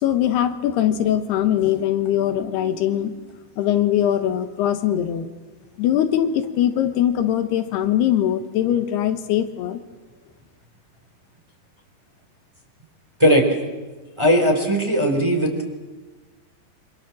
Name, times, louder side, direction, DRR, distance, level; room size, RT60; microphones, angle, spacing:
voice 1, 0.0-3.3 3.6-5.3 5.8-9.8, left 11 dB, 85° left, 9 dB, 3.3 m, -21 dB
voice 2, 14.2-15.5, equal, 5° right, 2 dB, 3.8 m, -17 dB
27.0 x 25.0 x 7.5 m, 1.2 s
omnidirectional pair, 4.6 m